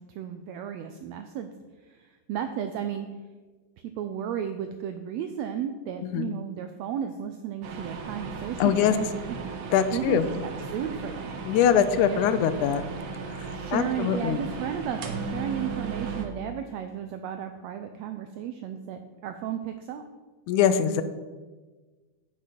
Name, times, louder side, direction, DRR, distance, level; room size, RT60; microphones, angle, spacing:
voice 1, 0.1-1.5 1.8-3.1 3.8-9.0 9.9-11.4 11.7-12.2 13.5-20.0, right 9 dB, 85° right, 7 dB, 1.5 m, -34 dB
sound 1, 7.6-16.3, right 4 dB, 70° right, 1.2 m, -36 dB
voice 2, 8.6-8.9 9.7-10.3 11.5-12.8 13.7-14.4 20.5-21.0, left 9 dB, 80° left, 12 dB, 2.0 m, -22 dB
8.3 x 6.6 x 5.8 m, 1.3 s
omnidirectional pair, 3.6 m